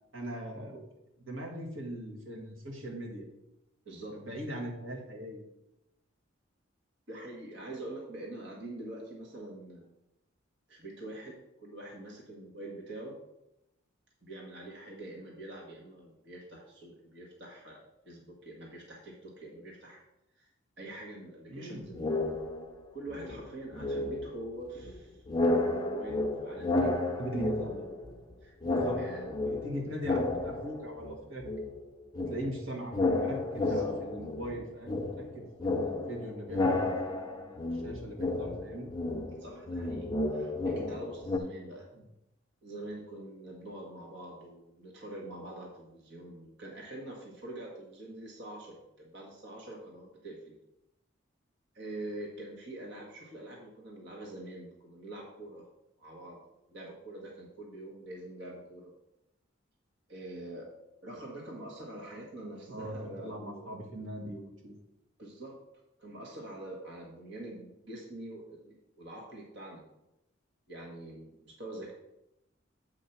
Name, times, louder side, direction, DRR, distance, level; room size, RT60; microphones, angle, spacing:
voice 1, 0.1-0.9 1.2-3.3 4.1-5.4 21.5-21.8 26.7-26.9 27.2-27.8 28.6-29.0 29.4-31.5 32.3-38.9 62.7-64.8, right 1 dB, 80° right, 0 dB, 1.8 m, -40 dB
voice 2, 3.8-4.2 7.1-9.9 10.7-13.1 14.2-20.0 20.4-20.5 20.8-22.4 22.9-25.2 25.6-27.0 28.4-28.6 29.0-29.3 33.6-33.9 39.4-41.9 42.6-50.6 51.7-55.7 56.0-56.4 56.7-58.9 60.1-60.7 61.0-63.7 65.2-65.5 66.0-69.8 70.7-71.9, right 1 dB, 60° right, -2 dB, 1.5 m, -45 dB
sound 1, 21.9-22.8 23.1-25.0 25.3-28.3 28.6-31.2 31.4-41.4, left 2 dB, 20° left, 0.7 m, -32 dB
7.8 x 4.8 x 5.8 m, 0.88 s
head